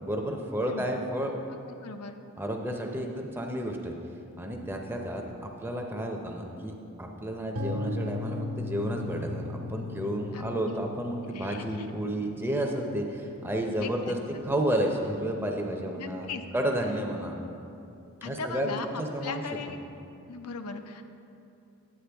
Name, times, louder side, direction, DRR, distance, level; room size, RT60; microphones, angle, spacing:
voice 1, 0.0-1.3 2.4-3.9 4.4-14.2 14.4-17.4 18.2-19.8, right 1 dB, 10° right, 2 dB, 0.6 m, -31 dB
voice 2, 1.8-2.2 10.3-10.8 11.3-11.6 13.8-14.2 16.0-16.4 18.2-18.9 19.2-19.8 20.3-21.0, left 4 dB, 90° left, 7 dB, 0.6 m, -38 dB
sound 1, 7.6-15.4, left 2 dB, 70° right, 1.2 m, -38 dB
9.7 x 8.2 x 3.4 m, 2.7 s
head